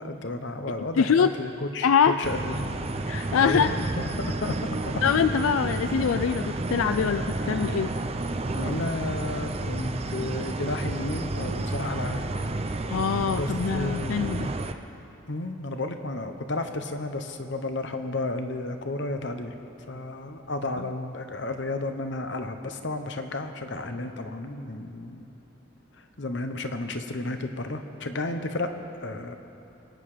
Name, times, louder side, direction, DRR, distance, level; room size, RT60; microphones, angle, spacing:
voice 1, 0.0-1.9 2.2-2.6 3.4-5.0 8.5-12.2 13.3-14.3 15.3-19.5 19.9-25.3 25.9-29.4, left 2 dB, 60° left, 7 dB, 1.0 m, -32 dB
voice 2, 1.0-1.3 1.8-2.2 3.0-3.7 5.0-7.9 12.9-14.5 20.8-20.9, left 7 dB, 85° left, 11 dB, 0.3 m, -24 dB
sound 1, 2.2-14.7, right 2 dB, 30° right, 0.6 m, -31 dB
25.5 x 9.5 x 5.0 m, 2.8 s
head